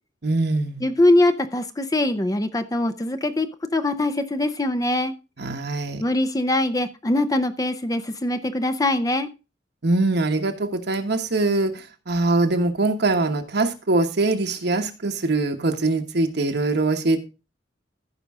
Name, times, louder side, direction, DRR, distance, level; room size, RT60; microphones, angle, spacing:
voice 1, 0.2-0.9 5.4-6.1 9.8-17.2, right 2 dB, 60° right, 1.2 m, -23 dB
voice 2, 0.8-3.5 3.7-5.1 6.0-9.3, left 1 dB, 20° left, 0.6 m, -22 dB
15.0 x 5.3 x 3.6 m
head